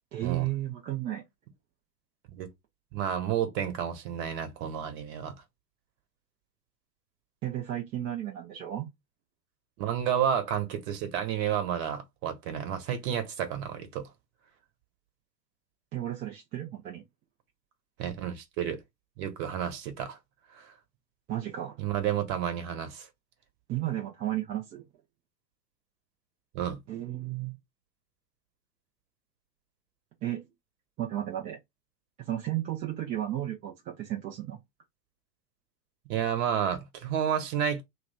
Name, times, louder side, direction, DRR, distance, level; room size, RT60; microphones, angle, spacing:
voice 1, 0.1-1.2 7.4-8.9 15.9-17.0 21.3-21.8 23.7-24.8 26.9-27.6 30.2-30.5 31.0-31.6 32.3-34.6, right 13 dB, 15° right, 0.4 m, -33 dB
voice 2, 2.9-5.4 9.8-14.1 18.0-18.8 19.2-20.2 20.5-20.7 21.8-23.1 26.5-26.8 36.1-37.8, right 9 dB, 40° right, 1.1 m, -31 dB
3.0 x 2.1 x 3.9 m
figure-of-eight pair, 100°, 50 cm